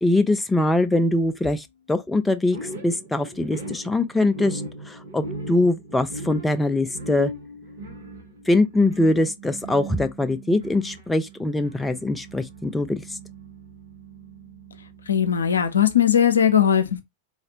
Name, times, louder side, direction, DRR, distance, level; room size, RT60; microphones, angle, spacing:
voice 1, 0.0-7.3 8.5-13.2, left 2 dB, 10° left, 0.4 m, -23 dB
sound 1, 2.5-15.5, right 2 dB, 65° right, 1.0 m, -38 dB
voice 2, 15.1-17.0, left 9 dB, 70° left, 0.5 m, -19 dB
4.0 x 2.4 x 2.8 m
figure-of-eight pair, 90°, 0 cm